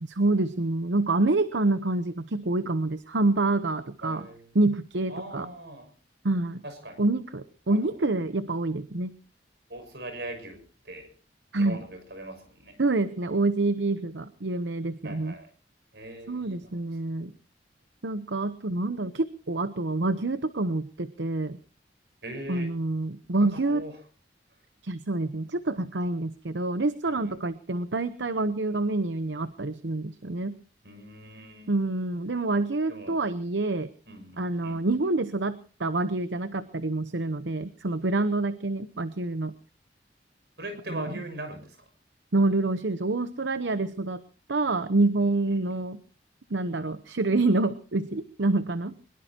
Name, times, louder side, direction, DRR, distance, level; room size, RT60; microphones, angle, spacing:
voice 1, 0.0-4.3 4.5-5.5 6.2-6.6 7.0-9.1 11.5-11.8 12.8-15.3 16.3-17.3 18.0-21.6 22.5-23.9 24.8-30.5 31.7-33.9 34.4-39.5 40.9-41.1 42.3-44.2 44.5-46.0 46.5-49.0, right 2 dB, 80° right, 12 dB, 0.9 m, -27 dB
voice 2, 4.0-4.5 5.1-5.9 6.6-7.0 7.7-7.9 9.7-11.1 11.5-12.8 15.0-15.5 15.9-16.8 22.2-22.7 23.4-24.0 27.1-27.4 30.8-31.7 32.9-33.3 34.1-34.8 40.6-41.8 45.5-45.6, right 1 dB, 65° right, 7 dB, 6.4 m, -41 dB
22.5 x 21.5 x 2.9 m, 0.37 s
head